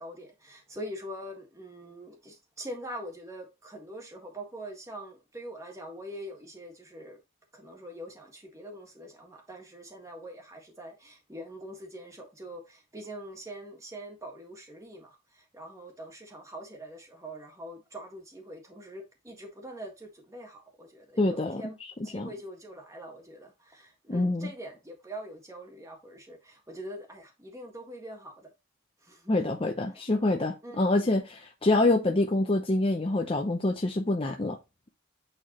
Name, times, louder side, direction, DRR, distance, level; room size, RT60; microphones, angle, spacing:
voice 1, 0.0-7.2 7.5-21.8 22.0-28.5 29.0-29.4 29.9-30.0 30.6-30.9, right 1 dB, 15° right, 1.7 m, -43 dB
voice 2, 21.2-21.6 22.1-22.3 24.1-24.5 29.3-34.6, left 2 dB, 25° left, 0.6 m, -26 dB
9.0 x 4.0 x 3.0 m
head